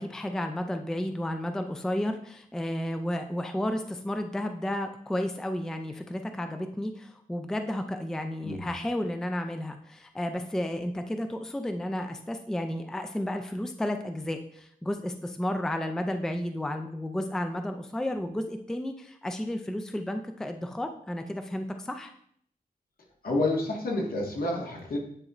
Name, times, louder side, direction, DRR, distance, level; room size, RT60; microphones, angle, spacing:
voice 1, 0.0-22.1, left 1 dB, 5° left, 6 dB, 0.3 m, -32 dB
voice 2, 23.2-25.0, left 2 dB, 75° left, -1 dB, 1.5 m, -29 dB
9.7 x 4.1 x 2.4 m, 0.65 s
wide cardioid pair, 150°, 15 cm